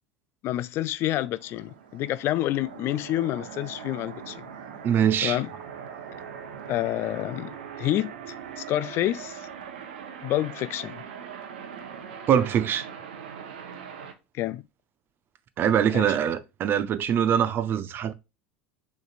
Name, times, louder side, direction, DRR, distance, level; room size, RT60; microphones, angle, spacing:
voice 1, 0.4-4.4 5.2-5.5 6.7-9.5 10.2-11.0 14.3-14.6 15.9-16.2, left 14 dB, 50° left, 0.4 m, -28 dB
sound 1, 1.4-14.1, right 7 dB, 80° right, 0.9 m, -41 dB
voice 2, 4.8-5.4 12.3-12.9 15.6-18.1, right 9 dB, 40° right, 0.6 m, -23 dB
6.2 x 3.2 x 2.4 m
hypercardioid pair, 85°, 5 cm